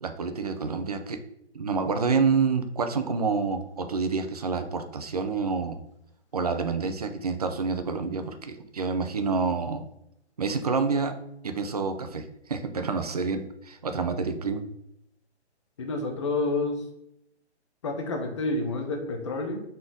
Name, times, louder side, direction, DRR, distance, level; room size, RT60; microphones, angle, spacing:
voice 1, 0.0-1.2 1.5-5.8 6.3-9.8 10.4-11.1 11.4-14.6, right 4 dB, 35° right, 7 dB, 0.4 m, -28 dB
voice 2, 15.8-16.8 17.8-19.6, left 2 dB, 25° left, 3 dB, 0.6 m, -29 dB
4.1 x 3.2 x 3.8 m, 0.78 s
figure-of-eight pair, 145°, 35 cm